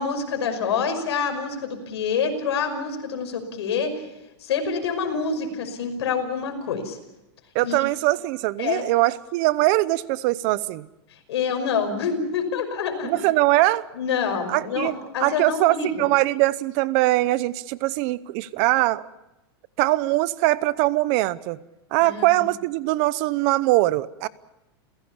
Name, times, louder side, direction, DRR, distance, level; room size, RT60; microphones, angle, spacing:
voice 1, 0.0-3.9 4.4-7.0 7.6-7.8 8.6-8.9 11.3-13.3 13.9-16.0 22.0-22.4, left 6 dB, 90° left, 6 dB, 5.7 m, -27 dB
voice 2, 7.5-10.9 13.0-13.9 14.5-14.9 15.2-19.0 19.8-21.6 21.9-24.3, right 18 dB, 40° right, 18 dB, 0.8 m, -22 dB
29.5 x 17.0 x 7.2 m, 0.95 s
supercardioid pair, 165°, 14 cm